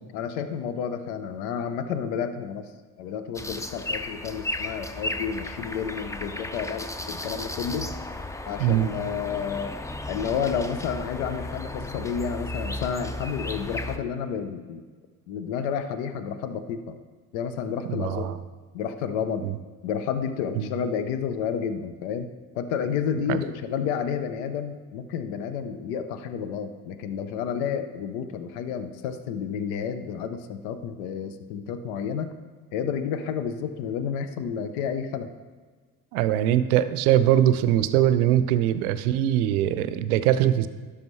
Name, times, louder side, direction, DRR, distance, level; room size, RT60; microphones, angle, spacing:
voice 1, 0.1-2.7 3.0-8.0 8.5-9.8 10.1-14.8 15.3-17.0 17.3-18.3 18.7-19.5 19.8-22.3 22.5-32.4 32.7-35.3, left 7 dB, 75° left, 9 dB, 0.7 m, -30 dB
sound 1, 3.3-14.0, left 1 dB, 10° left, 0.4 m, -34 dB
voice 2, 17.8-18.3 19.4-19.5 20.6-20.7 23.3-23.4 36.1-40.7, right 12 dB, 85° right, 13 dB, 0.5 m, -22 dB
12.0 x 5.0 x 3.2 m, 1.5 s
hypercardioid pair, 60°, 43 cm